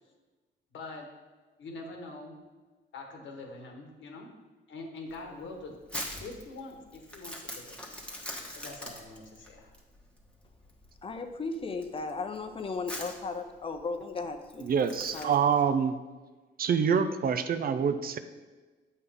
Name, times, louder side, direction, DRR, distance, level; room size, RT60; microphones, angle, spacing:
voice 1, 0.7-1.1 1.6-2.4 2.9-4.3 4.7-5.8 6.2-8.0 8.6-9.7, left 3 dB, 70° left, 2 dB, 1.4 m, -44 dB
Crumpling crinkling, 5.1-15.6, left 1 dB, 5° left, 1.2 m, -43 dB
voice 2, 11.0-14.7 15.1-15.3, left 3 dB, 25° left, 6 dB, 0.7 m, -36 dB
voice 3, 14.6-16.0 16.6-18.2, right 7 dB, 50° right, 10 dB, 0.5 m, -26 dB
8.2 x 5.5 x 3.5 m, 1.3 s
cardioid pair, 90°, 20 cm